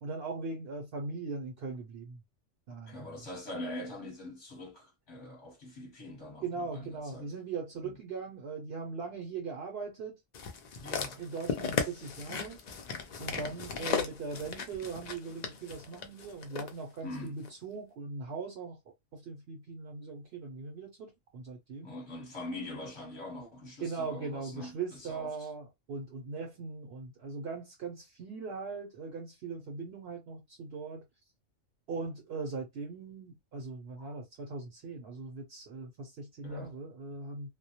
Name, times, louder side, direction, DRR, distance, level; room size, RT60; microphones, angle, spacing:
voice 1, 0.0-2.2 2.7-3.2 6.4-10.2 11.2-12.6 13.2-18.8 19.1-21.9 23.8-31.0 31.9-37.5, right 4 dB, 60° right, 0.7 m, -40 dB
voice 2, 2.9-7.3 7.8-7.9 10.8-11.2 13.3-13.6 17.0-17.4 21.8-25.5 34.0-34.2 36.4-36.8, left 1 dB, 25° left, 0.8 m, -43 dB
sound 1, 10.3-16.7 17.4-17.5, left 6 dB, 65° left, 0.4 m, -36 dB
2.1 x 2.1 x 2.8 m
omnidirectional pair, 1.3 m